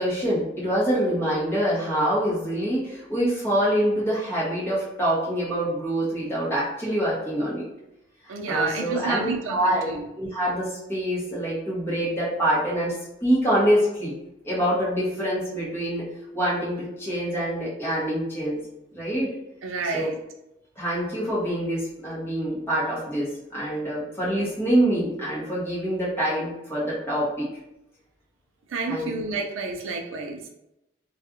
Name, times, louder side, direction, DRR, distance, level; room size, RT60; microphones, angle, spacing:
voice 1, 0.0-7.7 8.2-9.9 10.2-12.9 13.2-14.1 14.4-16.1 16.3-18.6 18.9-19.3 19.9-20.1 20.8-27.5 28.9-29.1, right 1 dB, 10° left, -8 dB, 1.1 m, -25 dB
voice 2, 8.3-10.1 19.6-20.2 28.7-30.5, right 3 dB, 85° right, 2 dB, 0.5 m, -30 dB
3.2 x 2.3 x 2.9 m, 0.87 s
head